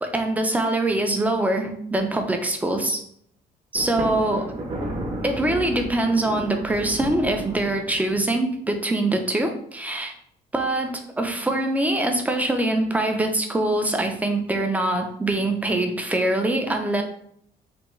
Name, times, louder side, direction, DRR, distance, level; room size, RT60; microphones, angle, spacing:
voice 1, 0.0-3.0 3.7-4.5 5.2-10.1 10.5-17.0, right 1 dB, 10° right, 4 dB, 0.4 m, -23 dB
Thunder, 3.7-8.3, right 1 dB, 35° right, 0.7 m, -32 dB
3.4 x 2.2 x 3.0 m, 0.68 s
cardioid pair, 110°, 17 cm